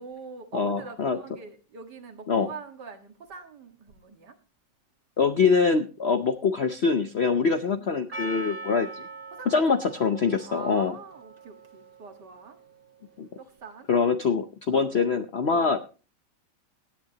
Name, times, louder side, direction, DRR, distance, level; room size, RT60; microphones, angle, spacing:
voice 1, 0.0-4.4 7.7-8.1 9.3-9.6 10.4-12.6 13.4-13.9 14.7-14.9 15.5-15.8, right 5 dB, 65° right, 2.2 m, -43 dB
voice 2, 0.5-1.2 2.3-2.5 5.2-9.1 9.5-10.9 13.2-13.3 13.9-15.8, left 5 dB, 55° left, 0.7 m, -24 dB
Percussion, 8.1-13.1, right 3 dB, 30° right, 2.1 m, -42 dB
17.5 x 10.5 x 2.9 m
omnidirectional pair, 2.0 m